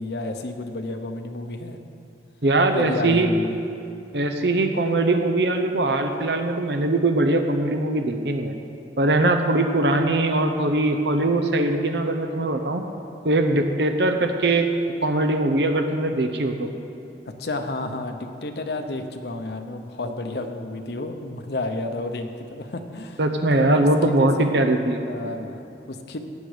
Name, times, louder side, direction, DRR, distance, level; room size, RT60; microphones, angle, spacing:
voice 1, 0.0-1.8 2.7-3.6 17.3-23.2 23.5-23.9 24.2-24.5 25.1-26.2, left 2 dB, 65° left, 6 dB, 0.9 m, -31 dB
voice 2, 2.4-3.3 4.1-8.5 9.0-12.8 13.2-14.7 15.0-16.7 23.2-25.0, right 2 dB, 70° right, 5 dB, 0.8 m, -21 dB
16.0 x 9.2 x 5.0 m, 2.6 s
head